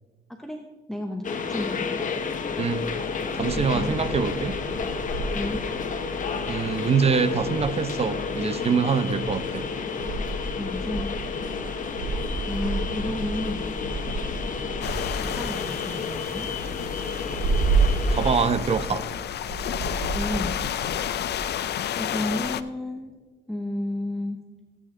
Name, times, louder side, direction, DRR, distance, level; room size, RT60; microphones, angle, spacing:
voice 1, 0.3-0.6 0.9-2.0 3.5-4.0 5.3-5.6 10.6-11.1 12.5-13.7 15.1-16.5 20.1-20.7 22.0-23.1 23.5-24.4, left 1 dB, ahead, 2 dB, 0.9 m, -32 dB
sound 1, 1.2-18.5, left 5 dB, 45° left, 1.3 m, -31 dB
voice 2, 3.3-4.6 6.5-9.6 18.1-19.0, right 5 dB, 35° right, 13 dB, 0.7 m, -24 dB
sound 2, 3.4-21.4, right 3 dB, 80° right, 3.8 m, -31 dB
sound 3, 14.8-22.6, left 10 dB, 60° left, 0.6 m, -31 dB
18.0 x 8.8 x 3.8 m, 1.3 s
cardioid pair, 115°, 19 cm